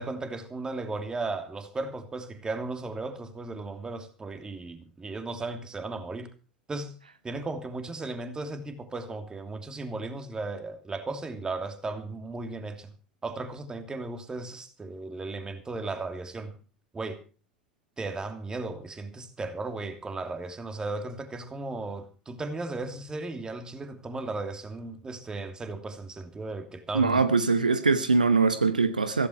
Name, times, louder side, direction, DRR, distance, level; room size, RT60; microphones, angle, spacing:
voice 1, 0.0-6.3 6.7-6.9 7.2-12.9 13.2-16.6 16.9-17.2 18.0-27.3, right 3 dB, 20° right, 2.9 m, -36 dB
voice 2, 26.9-29.3, right 4 dB, 80° right, 1.0 m, -22 dB
15.5 x 15.5 x 4.6 m
figure-of-eight pair, 75°, 4 cm